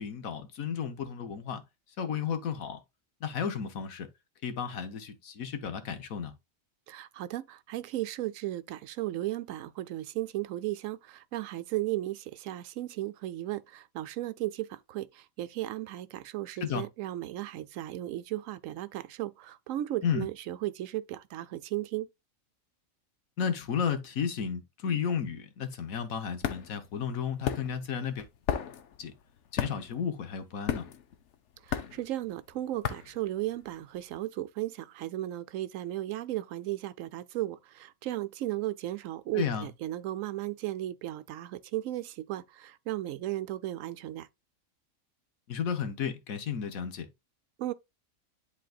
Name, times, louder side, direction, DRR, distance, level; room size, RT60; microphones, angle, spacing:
voice 1, 0.0-1.6 2.0-2.8 3.2-4.1 4.4-6.3 16.6-16.8 20.0-20.3 23.4-28.3 29.0-29.1 29.5-30.9 39.3-39.7 45.5-47.1, left 7 dB, 90° left, 1.5 m, -33 dB
voice 2, 6.9-22.1 31.6-44.3 47.6-47.7, right 14 dB, 75° right, 0.9 m, -35 dB
sound 1, 25.8-34.0, left 8 dB, 60° left, 1.0 m, -36 dB
10.5 x 3.9 x 2.3 m
omnidirectional pair, 1.4 m